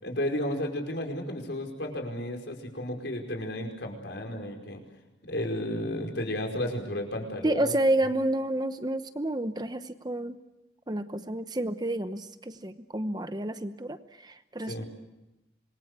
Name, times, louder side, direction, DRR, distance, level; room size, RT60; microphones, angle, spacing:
voice 1, 0.0-4.8 5.3-7.7 14.7-14.9, left 1 dB, 70° left, 2 dB, 5.2 m, -33 dB
voice 2, 7.4-10.4 10.9-14.8, right 1 dB, 20° right, 10 dB, 0.9 m, -30 dB
26.5 x 22.0 x 8.2 m, 0.98 s
head